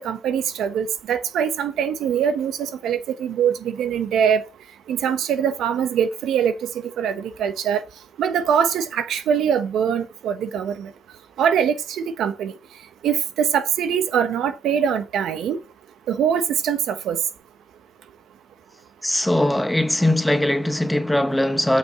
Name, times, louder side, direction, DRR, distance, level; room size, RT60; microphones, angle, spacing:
voice 1, 0.0-4.4 4.9-6.7 7.0-7.8 8.2-10.9 11.4-12.5 13.0-15.6 16.1-17.2, right 8 dB, 75° right, 1.1 m, -23 dB
voice 2, 19.0-21.8, left 1 dB, 5° left, 1.2 m, -20 dB
7.3 x 5.8 x 7.4 m
cardioid pair, 90°, 0 cm